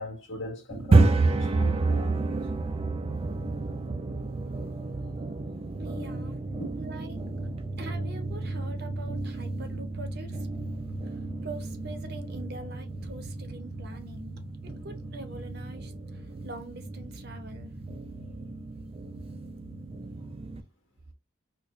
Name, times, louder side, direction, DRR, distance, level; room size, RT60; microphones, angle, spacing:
voice 1, 0.0-2.4 4.5-4.7, left 1 dB, 75° left, 1.6 m, -41 dB
sound 1, 0.7-20.6, right 3 dB, 30° right, 0.3 m, -30 dB
voice 2, 5.8-6.4 6.8-7.3 7.8-10.5 11.0-17.7, right 2 dB, 50° right, 0.7 m, -44 dB
4.5 x 2.1 x 2.5 m
head